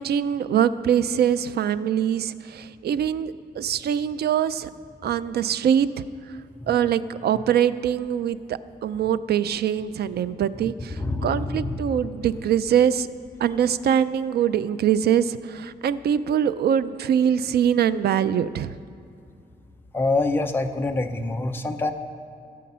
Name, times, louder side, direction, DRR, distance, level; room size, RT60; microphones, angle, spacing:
voice 1, 0.0-4.7 5.0-6.1 6.7-13.1 13.4-18.7, right 9 dB, 75° right, 15 dB, 0.4 m, -23 dB
voice 2, 11.0-12.1 19.9-21.9, left 2 dB, 15° left, 5 dB, 0.5 m, -26 dB
16.5 x 7.5 x 5.5 m, 2.5 s
wide cardioid pair, 175°, 17 cm